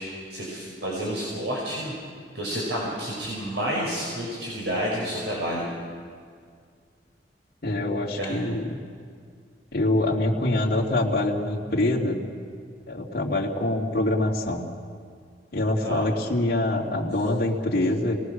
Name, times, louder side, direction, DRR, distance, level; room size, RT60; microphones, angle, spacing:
voice 1, 0.0-1.9 2.3-5.7 8.2-8.4 15.8-16.0, equal, 90° right, -4 dB, 5.6 m, -30 dB
voice 2, 7.6-8.8 9.7-12.2 12.9-14.6 15.5-18.2, left 1 dB, 60° left, -4 dB, 2.5 m, -25 dB
27.5 x 19.5 x 6.5 m, 2.1 s
head